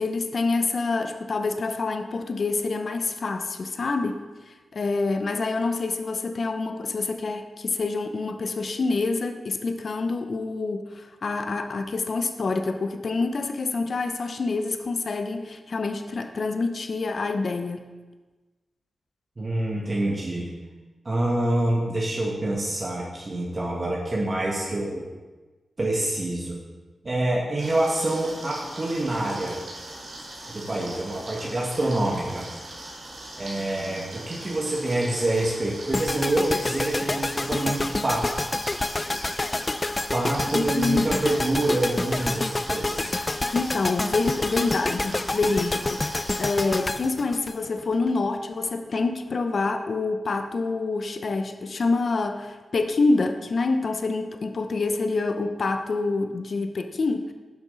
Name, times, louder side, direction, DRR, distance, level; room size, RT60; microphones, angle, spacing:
voice 1, 0.0-17.9 40.5-41.2 43.5-57.3, left 3 dB, 65° left, 7 dB, 0.7 m, -27 dB
voice 2, 19.4-20.5 21.1-25.1 25.8-26.6 27.0-29.6 30.5-32.5 33.4-38.3 40.1-43.1, right 1 dB, 40° right, -4 dB, 1.9 m, -26 dB
sound 1, 27.6-46.8, right 1 dB, 85° right, 2.6 m, -40 dB
sound 2, 35.9-48.1, left 2 dB, 35° left, 0.4 m, -28 dB
10.5 x 6.1 x 4.0 m, 1.3 s
cardioid pair, 50°, 0 cm